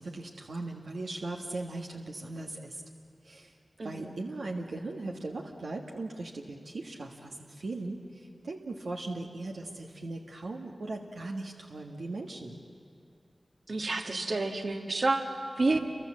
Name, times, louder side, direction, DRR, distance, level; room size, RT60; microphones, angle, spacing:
voice 1, 0.0-2.8 3.2-3.5 3.8-12.6, right 2 dB, 90° right, 0 dB, 1.6 m, -38 dB
voice 2, 3.8-4.1 13.7-15.8, right 2 dB, 70° right, 4 dB, 1.9 m, -29 dB
28.5 x 24.0 x 7.6 m, 2.3 s
wide cardioid pair, 50°, 0 cm